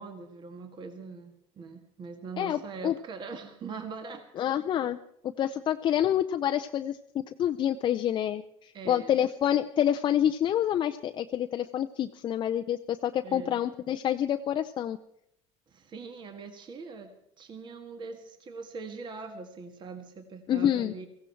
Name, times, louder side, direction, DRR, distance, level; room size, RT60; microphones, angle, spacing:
voice 1, 0.0-4.3 8.7-9.2 13.2-13.6 15.7-21.1, right 4 dB, 35° right, 6 dB, 1.7 m, -42 dB
voice 2, 2.4-3.0 4.4-5.0 5.4-15.0 20.5-20.9, left 10 dB, 35° left, 7 dB, 0.5 m, -27 dB
17.0 x 15.5 x 4.6 m, 0.75 s
supercardioid pair, 120°, 13 cm